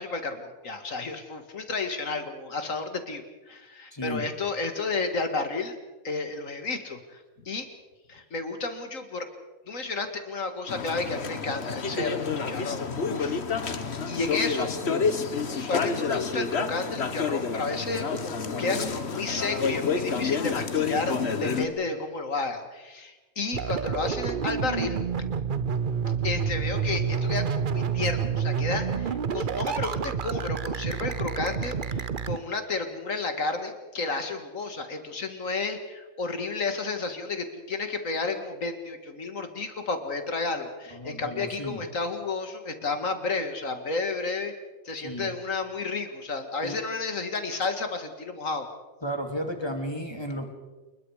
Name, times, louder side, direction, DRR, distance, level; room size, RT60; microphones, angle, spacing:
voice 1, 0.0-5.8 6.0-7.7 8.1-9.3 9.7-13.4 14.1-14.7 15.5-21.1 21.4-25.0 26.2-44.5 44.8-48.7, left 3 dB, 70° left, 7 dB, 2.4 m, -32 dB
voice 2, 3.9-4.2 21.5-21.7 40.9-41.8 45.0-45.3 46.6-46.8 49.0-50.5, equal, 20° left, 4 dB, 2.9 m, -33 dB
sound 1, 10.7-21.7, left 5 dB, 50° left, 1.5 m, -29 dB
sound 2, 23.5-32.4, right 6 dB, 45° right, 0.9 m, -28 dB
28.5 x 21.0 x 5.0 m, 1.2 s
omnidirectional pair, 1.4 m